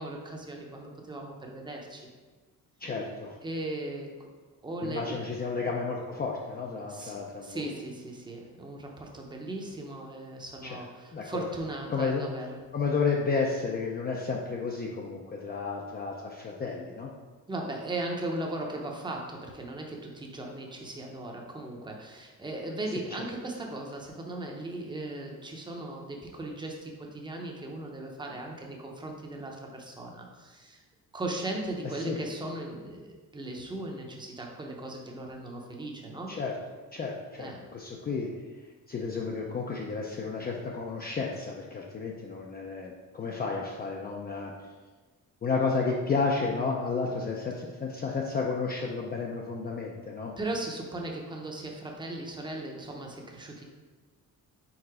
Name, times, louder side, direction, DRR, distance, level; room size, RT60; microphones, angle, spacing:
voice 1, 0.0-2.1 3.4-4.3 4.6-5.2 6.9-12.6 17.5-30.8 31.1-36.4 37.4-37.6 50.4-53.6, right 2 dB, 15° right, 0 dB, 0.7 m, -37 dB
voice 2, 2.8-3.4 4.8-7.7 10.6-10.8 11.1-11.5 11.9-12.2 12.7-17.1 22.9-23.0 32.0-32.2 36.3-36.5 36.9-38.3 38.9-44.5 45.4-50.3, left 4 dB, 30° left, -1 dB, 0.4 m, -32 dB
4.7 x 4.2 x 4.8 m, 1.3 s
wide cardioid pair, 180°, 35 cm